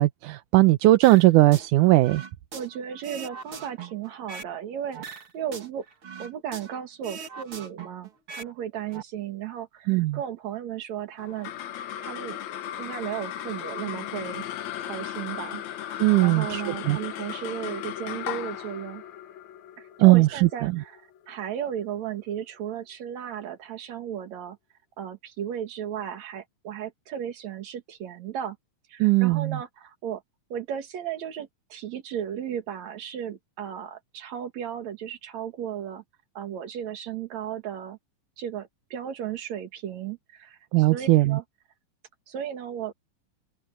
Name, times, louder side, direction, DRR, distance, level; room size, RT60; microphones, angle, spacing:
voice 1, 0.0-2.2 9.9-10.2 16.0-17.0 20.0-20.3 20.6-20.7 29.0-29.6 40.7-41.4, right 19 dB, 80° right, 2.2 m, -19 dB
sound 1, 1.0-1.7 2.0-4.6 4.9-6.8 7.0-8.5 8.8-9.0, right 5 dB, 45° right, 2.8 m, -40 dB
voice 2, 2.5-5.8 6.2-11.5 11.8-12.4 12.8-14.5 14.8-19.0 19.8-24.6 25.0-28.6 28.9-30.2 30.5-36.0 36.3-38.0 38.4-40.6 40.9-41.4 42.3-42.9, right 9 dB, 60° right, 3.1 m, -35 dB
sound 2, 11.2-21.8, left 11 dB, 70° left, 2.3 m, -36 dB
open air
omnidirectional pair, 3.6 m